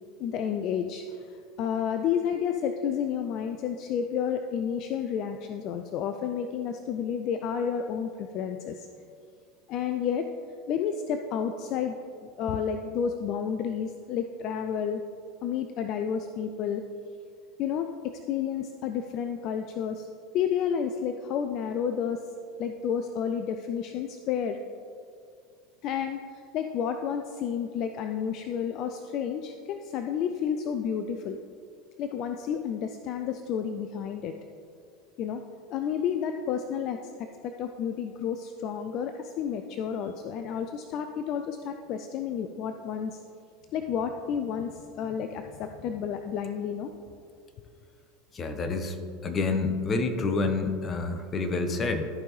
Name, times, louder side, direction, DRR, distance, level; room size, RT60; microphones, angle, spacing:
voice 1, 0.2-8.9 9.7-10.3 10.7-11.9 12.4-15.0 15.4-16.8 17.6-20.1 20.3-22.2 22.6-24.6 25.8-31.4 32.0-34.4 35.2-35.4 35.7-43.2 43.7-46.9, left 8 dB, 50° left, 7 dB, 0.4 m, -31 dB
voice 2, 48.3-48.9 49.2-52.1, left 3 dB, 30° left, 7 dB, 1.0 m, -28 dB
14.0 x 5.2 x 3.2 m, 2.3 s
hypercardioid pair, 80°, 0 cm